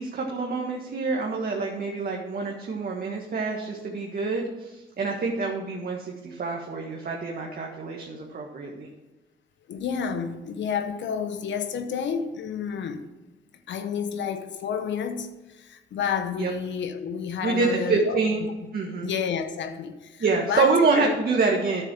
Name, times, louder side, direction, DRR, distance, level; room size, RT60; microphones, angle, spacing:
voice 1, 0.0-8.9 16.4-16.5 17.4-18.4 18.7-19.1 20.2-21.8, right 4 dB, 50° right, 0 dB, 1.6 m, -26 dB
voice 2, 9.7-13.0 13.7-18.2 19.0-21.2, left 7 dB, 70° left, 8 dB, 1.1 m, -30 dB
9.5 x 7.1 x 6.1 m, 1.1 s
cardioid pair, 90°, 20 cm